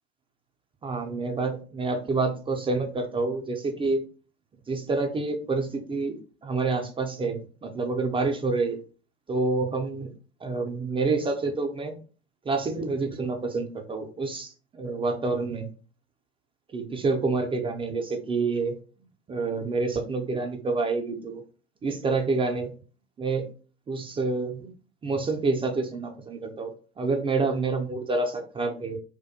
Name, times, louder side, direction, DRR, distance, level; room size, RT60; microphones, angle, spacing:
voice 1, 0.8-4.0 4.7-6.2 6.4-8.8 9.3-10.1 10.4-12.0 12.5-15.7 16.7-18.8 19.3-21.4 21.8-22.7 23.2-23.5 23.9-24.7 25.0-26.7 27.0-29.0, right 3 dB, 15° right, 4 dB, 0.3 m, -28 dB
2.2 x 2.1 x 2.7 m, 0.38 s
hypercardioid pair, 80°, 33 cm